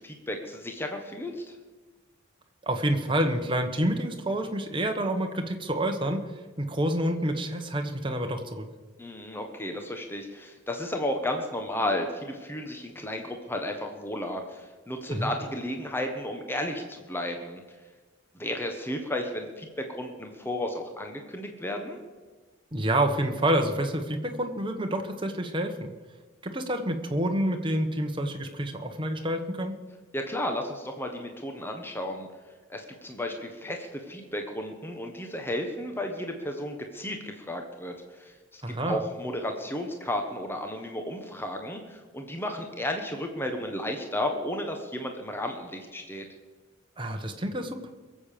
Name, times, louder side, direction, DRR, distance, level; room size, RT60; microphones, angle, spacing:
voice 1, 0.0-1.5 9.0-17.6 18.3-22.0 30.1-32.3 32.7-46.3, left 1 dB, 10° left, 4 dB, 1.2 m, -33 dB
voice 2, 2.6-6.3 6.6-8.7 15.1-15.3 22.7-25.9 26.4-29.8 38.6-39.0 47.0-47.9, right 1 dB, 25° right, 4 dB, 1.3 m, -28 dB
22.0 x 7.6 x 6.8 m, 1.3 s
head